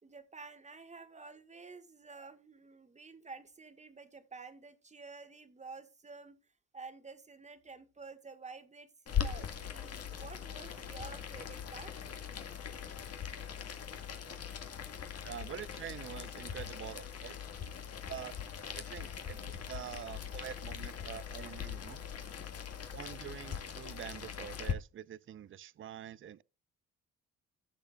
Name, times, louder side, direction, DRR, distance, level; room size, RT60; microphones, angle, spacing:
voice 1, 0.0-6.4 6.7-8.9 9.2-12.1, right 4 dB, 25° right, 1.6 m, -50 dB
Boiling, 9.1-24.7, left 8 dB, 55° left, 1.8 m, -41 dB
voice 2, 15.2-17.4 18.1-18.4 18.7-22.0 22.9-26.4, right 10 dB, 40° right, 0.5 m, -46 dB
16.0 x 6.8 x 2.3 m
cardioid pair, 90°, 30 cm